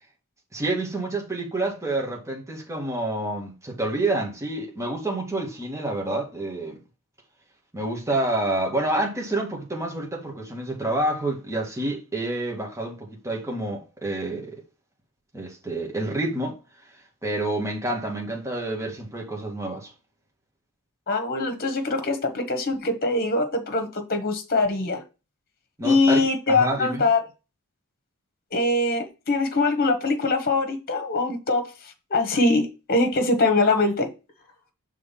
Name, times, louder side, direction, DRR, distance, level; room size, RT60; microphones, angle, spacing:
voice 1, 0.5-6.8 7.7-14.6 15.3-16.6 17.2-19.9 25.8-27.0, right 2 dB, 15° right, 2.1 m, -28 dB
voice 2, 21.1-25.0 25.8-27.2 28.5-31.7 32.1-34.1, left 3 dB, 45° left, 1.3 m, -23 dB
6.3 x 3.6 x 5.8 m
head